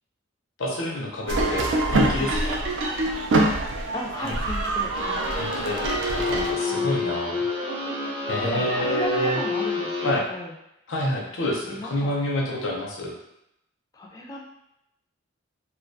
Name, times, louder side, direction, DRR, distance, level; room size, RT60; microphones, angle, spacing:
voice 1, 0.6-2.6 4.2-4.4 5.3-7.4 8.3-9.4 10.0-10.3 10.9-13.1, left 1 dB, 75° left, -2 dB, 0.5 m, -28 dB
sound 1, 1.3-6.5, right 2 dB, 65° right, 0.3 m, -25 dB
voice 2, 3.9-5.5 6.6-7.0 8.4-10.5 11.6-12.1 13.9-14.4, left 1 dB, 20° left, -1 dB, 0.3 m, -35 dB
sound 2, 4.9-10.1, left 3 dB, 30° right, 0.7 m, -29 dB
2.3 x 2.2 x 2.5 m, 0.84 s
head